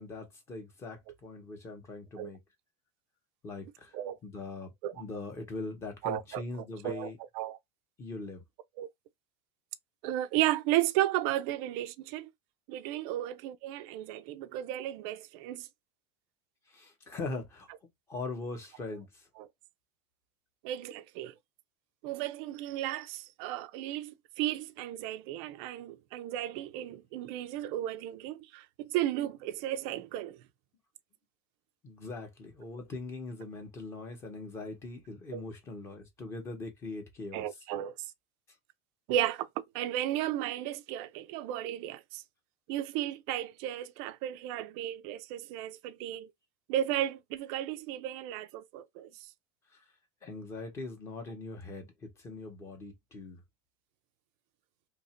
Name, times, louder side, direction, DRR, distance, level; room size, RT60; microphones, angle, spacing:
voice 1, 0.0-2.4 3.4-4.0 4.2-7.2 8.0-8.4 16.7-17.7 18.1-19.3 31.8-37.5 49.7-49.8 50.2-53.4, left 3 dB, 15° left, 0.8 m, -41 dB
voice 2, 6.0-7.6 8.8-8.9 10.0-12.3 12.7-15.7 19.4-19.5 20.6-21.3 22.0-30.4 35.3-35.4 37.3-37.9 39.1-42.2 42.7-46.3 46.7-49.1, right 13 dB, 40° right, 0.4 m, -34 dB
2.9 x 2.4 x 4.2 m
supercardioid pair, 180°, 16 cm